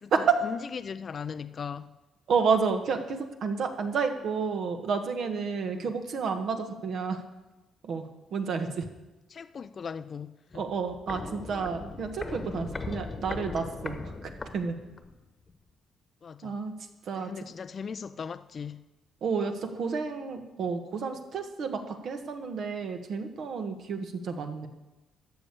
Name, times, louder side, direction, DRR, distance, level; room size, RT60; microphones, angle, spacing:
voice 1, 0.0-2.0 5.6-5.9 9.3-10.7 16.2-16.6 17.1-18.9, left 6 dB, 45° left, 0.4 m, -39 dB
voice 2, 2.3-7.2 7.8-8.8 10.5-14.7 16.4-16.7 17.0-17.3 19.2-24.7, right 5 dB, 65° right, 1.5 m, -31 dB
Walk footsteps, 10.5-15.2 15.5-15.6, left 3 dB, 30° left, 1.2 m, -39 dB
12.5 x 6.9 x 8.4 m
cardioid pair, 85°, 0 cm